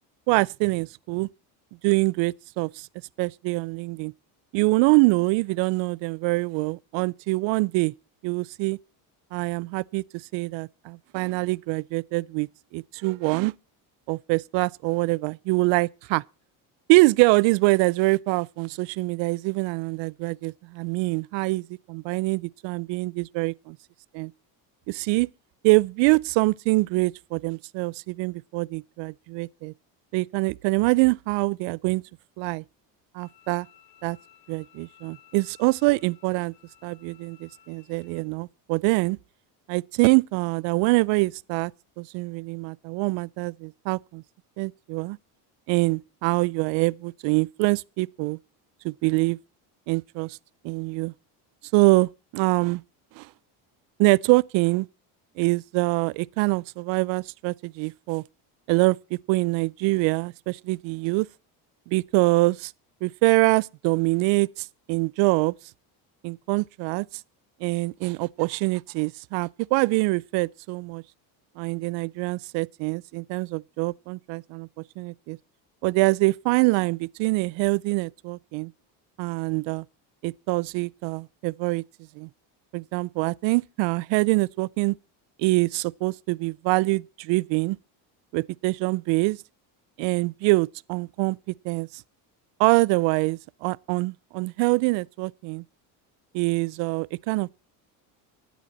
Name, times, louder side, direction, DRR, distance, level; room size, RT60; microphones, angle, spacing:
voice 1, 0.3-1.3 1.8-2.9 3.2-4.1 4.5-7.9 8.2-8.8 9.3-10.0 10.3-13.5 14.1-16.2 16.9-23.8 24.1-24.3 24.9-25.3 25.6-29.7 30.1-32.0 32.4-32.6 33.1-33.7 34.0-34.2 34.5-36.5 36.8-39.2 39.7-41.7 42.0-44.2 44.6-45.2 45.7-48.4 48.8-49.4 49.9-50.4 50.6-51.1 51.7-52.8 53.2-53.3 54.0-54.9 55.4-58.2 58.7-61.3 61.9-62.7 63.0-65.5 66.2-67.1 67.6-71.0 71.6-74.7 75.0-75.4 75.8-78.7 79.2-79.8 80.2-81.8 82.2-82.3 82.7-85.0 85.4-87.8 88.3-89.4 90.0-91.4 91.6-92.0 92.6-95.6 96.3-97.5, right 24 dB, 70° right, 0.6 m, -24 dB
Bowed string instrument, 33.2-38.2, left 11 dB, 70° left, 2.6 m, -57 dB
13.5 x 10.5 x 4.1 m
cardioid pair, 120°, 45 cm